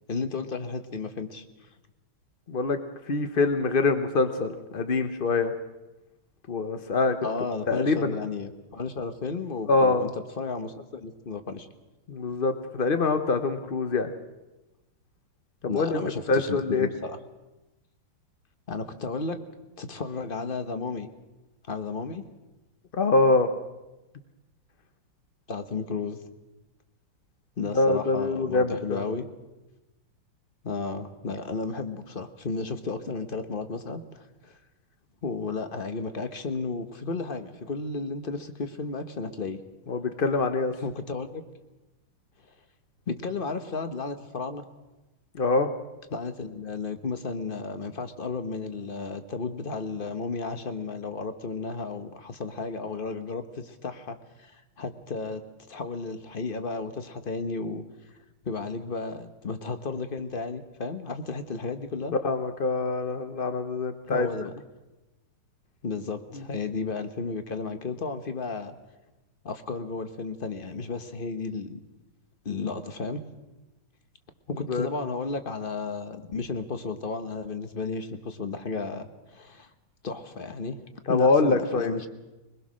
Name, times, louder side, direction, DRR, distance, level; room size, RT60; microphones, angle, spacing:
voice 1, 0.1-1.4 7.2-11.7 15.7-17.2 18.7-19.4 19.8-21.1 21.7-22.2 25.5-26.2 27.6-29.3 30.6-34.6 35.2-39.6 40.8-41.4 43.1-44.6 46.1-55.4 55.7-57.8 58.4-62.1 64.1-64.5 65.8-68.7 69.4-71.8 72.4-73.2 74.5-79.7 80.0-80.8 81.1-82.1, left 4 dB, 35° left, 8 dB, 1.0 m, -33 dB
voice 2, 2.5-2.8 3.1-5.5 6.5-7.2 7.7-8.2 9.7-10.1 12.1-14.1 15.7-16.0 16.3-16.9 22.9-23.5 27.7-29.0 39.9-40.7 45.3-45.7 62.2-64.5 74.7-74.9 81.1-81.9, left 3 dB, 50° left, 8 dB, 0.6 m, -24 dB
23.0 x 20.5 x 6.3 m, 1.0 s
omnidirectional pair, 2.3 m